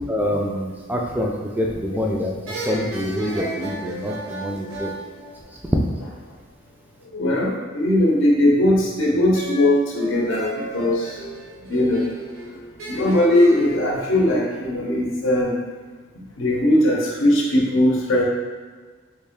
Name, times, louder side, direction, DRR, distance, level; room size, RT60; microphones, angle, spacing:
voice 1, 0.1-2.4 2.7-4.9, equal, 10° right, -1 dB, 0.3 m, -26 dB
sound 1, 1.7-2.1 2.5-6.1 9.3-13.8, equal, 75° right, 0.7 m, -34 dB
voice 2, 7.1-11.2 11.6-12.1 12.9-15.6 16.4-18.2, left 1 dB, 65° left, -2 dB, 0.7 m, -19 dB
3.2 x 2.6 x 3.5 m, 1.4 s
head